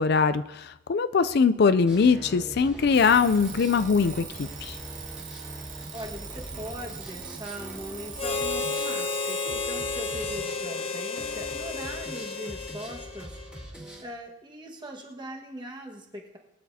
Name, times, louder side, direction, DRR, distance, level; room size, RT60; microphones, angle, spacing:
voice 1, 0.0-4.8, left 5 dB, 50° left, 12 dB, 0.4 m, -22 dB
sound 1, 1.9-14.0, equal, 5° right, 2.4 m, -43 dB
Alarm, 2.9-9.6, right 8 dB, 40° right, 0.8 m, -43 dB
voice 2, 5.9-16.4, equal, 20° right, 0 dB, 1.5 m, -40 dB
Harmonica, 8.2-13.7, left 4 dB, 25° left, 0.7 m, -32 dB
22.0 x 9.5 x 2.8 m, 0.97 s
head